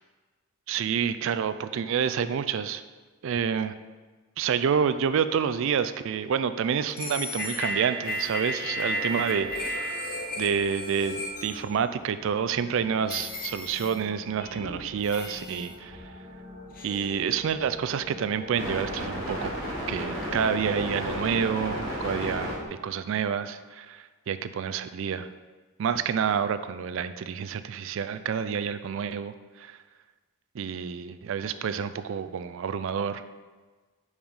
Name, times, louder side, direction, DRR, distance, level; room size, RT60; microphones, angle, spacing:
voice 1, 0.7-2.8 3.2-3.8 4.4-9.9 10.4-16.1 16.8-19.6 19.9-25.3 25.8-29.8 30.5-33.2, right 7 dB, 60° right, 12 dB, 0.3 m, -28 dB
sound 1, 5.7-6.3 6.9-7.2 8.0-22.7, equal, 65° left, 2.2 m, -38 dB
sound 2, 6.9-12.1 12.7-12.8 13.1-14.0 14.4-16.1 16.8-17.1, equal, 40° left, 0.8 m, -34 dB
5.5 x 4.8 x 5.2 m, 1.3 s
head